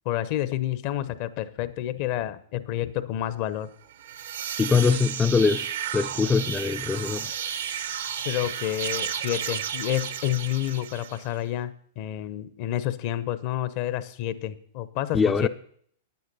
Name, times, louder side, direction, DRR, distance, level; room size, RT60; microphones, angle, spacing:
voice 1, 0.0-3.7 8.2-15.5, left 13 dB, 50° left, 0.7 m, -29 dB
sound 1, 3.9-11.4, right 8 dB, 75° right, 0.9 m, -33 dB
voice 2, 4.6-7.3 15.1-15.5, left 5 dB, 15° left, 0.4 m, -23 dB
9.6 x 9.5 x 5.4 m
hypercardioid pair, 110°, 0 cm